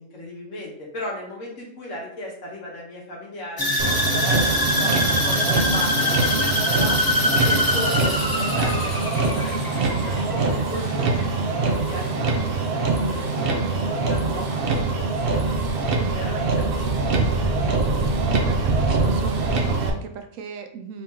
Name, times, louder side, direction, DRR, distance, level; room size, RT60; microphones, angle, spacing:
voice 1, 0.0-7.0 7.4-15.6 16.0-17.8, left 1 dB, 75° left, -3 dB, 1.7 m, -36 dB
sound 1, 3.6-11.8 12.1-12.5 13.0-13.1, left 1 dB, 25° left, 0.5 m, -24 dB
Motor vehicle (road), 3.8-19.9, right 3 dB, 55° right, 0.8 m, -23 dB
voice 2, 18.4-21.0, right 5 dB, 90° right, 6 dB, 1.0 m, -37 dB
4.0 x 2.8 x 3.7 m, 0.65 s
omnidirectional pair, 1.3 m